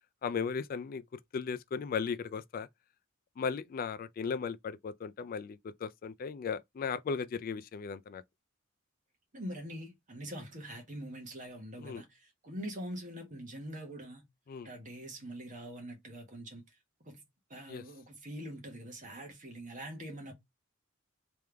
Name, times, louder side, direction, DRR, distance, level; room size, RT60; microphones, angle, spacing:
voice 1, 0.2-1.0 1.3-2.7 3.4-8.2 11.8-12.0 14.5-14.7 17.7-17.8, left 6 dB, 45° left, 0.3 m, -36 dB
voice 2, 9.3-14.2 14.6-16.6 17.0-17.2 17.5-20.3, equal, 40° right, 1.5 m, -44 dB
3.4 x 3.4 x 3.4 m
head